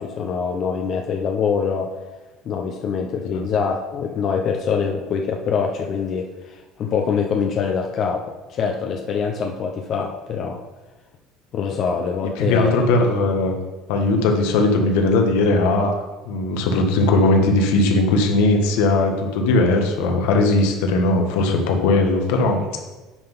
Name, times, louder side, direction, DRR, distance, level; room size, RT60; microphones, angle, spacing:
voice 1, 0.0-1.9 2.5-10.6 11.5-12.8, left 6 dB, 40° left, 2 dB, 0.6 m, -24 dB
voice 2, 12.4-13.5 13.9-22.7, left 2 dB, 80° left, 3 dB, 1.3 m, -19 dB
8.8 x 3.9 x 5.4 m, 1.2 s
cardioid pair, 145°, 0 cm